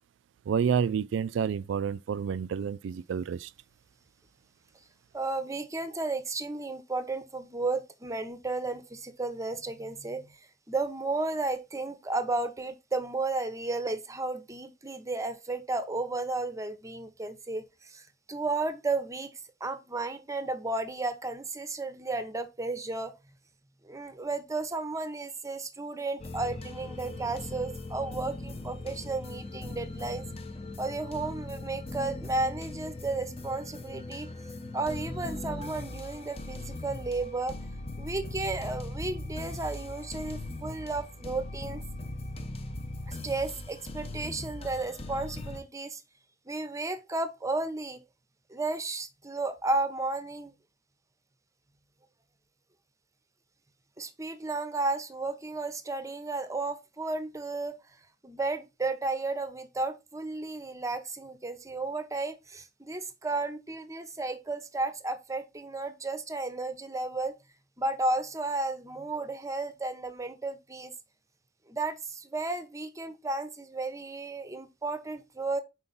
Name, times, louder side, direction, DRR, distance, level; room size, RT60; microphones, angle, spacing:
voice 1, 0.5-3.5, right 7 dB, 85° right, 0.3 m, -29 dB
voice 2, 5.1-10.4 10.7-19.3 19.6-23.1 23.8-30.2 30.8-34.3 34.7-37.5 38.0-41.8 43.1-46.0 46.5-48.0 48.5-50.5 54.0-57.8 58.2-67.3 67.8-70.9 71.7-75.6, right 2 dB, 15° right, 0.7 m, -33 dB
sound 1, 26.2-45.6, left 2 dB, 35° left, 0.6 m, -39 dB
5.5 x 4.4 x 3.9 m
head